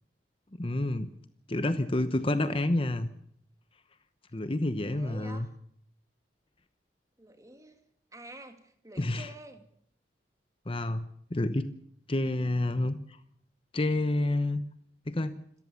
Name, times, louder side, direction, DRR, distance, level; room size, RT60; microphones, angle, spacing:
voice 1, 0.6-1.1 1.5-3.1 4.3-5.5 9.0-9.3 10.7-11.7 12.1-13.2 13.7-14.6 15.1-15.4, left 1 dB, 30° left, 11 dB, 0.9 m, -29 dB
voice 2, 4.8-5.5 7.2-7.8 8.1-9.7, right 1 dB, 20° right, 7 dB, 2.4 m, -49 dB
26.5 x 14.0 x 7.1 m, 0.67 s
head